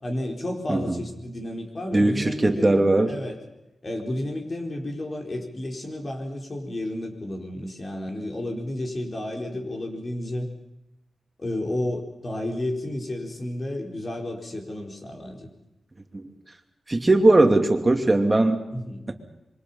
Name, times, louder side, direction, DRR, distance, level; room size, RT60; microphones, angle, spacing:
voice 1, 0.0-2.8 3.1-3.4 3.8-10.5 11.4-15.5 18.7-19.1, left 1 dB, 40° left, 2 dB, 4.4 m, -32 dB
voice 2, 1.9-3.1 16.1-16.2 16.9-18.6 19.1-19.2, right 2 dB, 20° right, 4 dB, 2.7 m, -19 dB
26.0 x 23.5 x 5.7 m, 0.92 s
wide cardioid pair, 90°, 0 cm